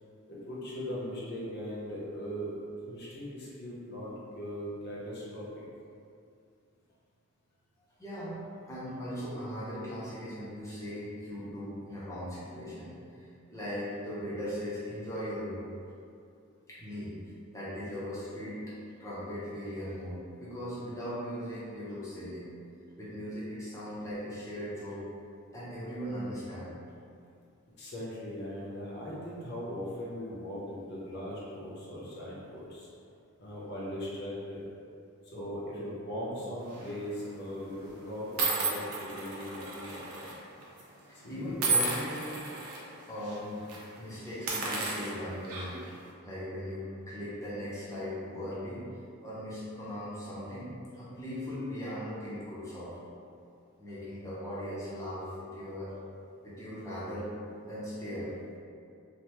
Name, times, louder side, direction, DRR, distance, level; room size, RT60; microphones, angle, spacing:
voice 1, 0.3-2.5 2.8-5.6 27.8-32.9 33.4-34.6 35.2-40.3 41.1-41.7, equal, 50° left, -7 dB, 0.7 m, -39 dB
voice 2, 8.0-15.7 16.7-17.2 17.5-22.5 23.0-25.0 25.5-26.7 41.3-42.5 43.1-43.6 44.0-45.8 46.2-48.9 49.2-53.0 53.8-55.9 56.4-57.4 57.6-58.6, equal, 15° left, -9 dB, 0.7 m, -39 dB
sound 1, 36.7-37.0 37.7-37.8 38.4-40.3 40.6-40.8 41.6-42.8 43.2-43.4 43.7-43.8 44.3-45.9, right 3 dB, 85° right, 0.6 m, -32 dB
3.3 x 2.1 x 2.9 m, 2.4 s
head